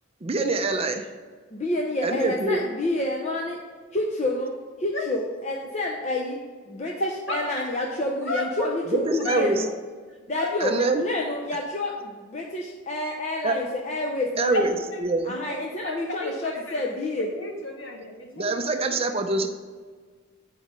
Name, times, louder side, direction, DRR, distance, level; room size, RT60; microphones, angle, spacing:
voice 1, 0.2-1.1 2.0-2.6 8.9-9.6 10.6-11.0 13.4-13.6 14.4-15.4 18.4-19.5, right 3 dB, 30° right, 6 dB, 0.5 m, -25 dB
voice 2, 1.5-3.6 3.9-4.5 4.8-6.4 6.7-9.7 10.3-10.7 11.0-14.7 15.3-17.3, left 1 dB, 35° left, 0 dB, 0.7 m, -28 dB
voice 3, 7.0-7.4 8.3-8.7 9.2-9.4 10.3-10.5 14.5-15.0 15.5-15.6 15.8-16.9 17.2-18.6 19.1-19.2, left 2 dB, 60° left, 0 dB, 1.7 m, -32 dB
8.5 x 4.9 x 5.1 m, 1.5 s
head